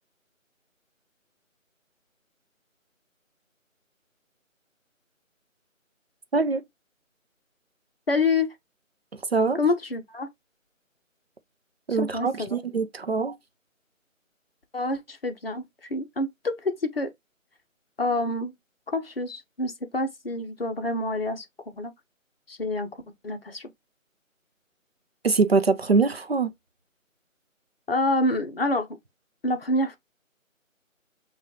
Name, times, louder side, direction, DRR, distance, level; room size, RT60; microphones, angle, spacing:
voice 1, 6.3-6.6 9.3-9.6 11.9-13.4 25.2-26.5, right 4 dB, 50° right, 0.5 m, -23 dB
voice 2, 8.1-8.5 9.6-10.3 11.9-12.6 14.7-17.1 18.0-18.5 18.9-21.5 21.7-21.9 22.5-22.9 23.2-23.7 27.9-28.9 29.4-30.0, left 2 dB, 45° left, 0.7 m, -27 dB
5.7 x 2.3 x 2.8 m
figure-of-eight pair, 165°, 41 cm